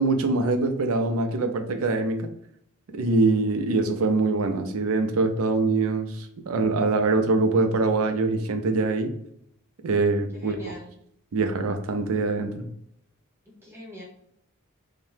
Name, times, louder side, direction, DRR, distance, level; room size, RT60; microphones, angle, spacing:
voice 1, 0.0-2.3 2.9-9.1 9.8-10.7 11.3-12.7, right 3 dB, 70° right, 0.4 m, -24 dB
voice 2, 10.3-11.0 13.5-14.0, left 1 dB, 10° right, 0.9 m, -43 dB
2.7 x 2.1 x 3.2 m
head